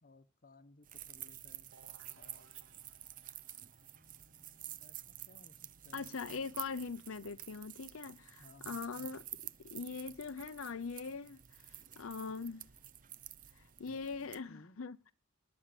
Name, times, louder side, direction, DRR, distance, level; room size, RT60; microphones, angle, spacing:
voice 1, 0.0-1.7 2.1-2.5 3.9-6.4 8.4-9.2 14.5-14.8, left 2 dB, 45° left, 1.1 m, -61 dB
sound 1, 0.8-14.4, right 12 dB, 40° right, 0.6 m, -50 dB
sound 2, 1.7-7.3, right 4 dB, 70° right, 1.8 m, -66 dB
voice 2, 5.9-9.2 9.6-12.7 13.5-15.1, left 5 dB, 75° left, 0.6 m, -42 dB
19.5 x 7.3 x 8.2 m
head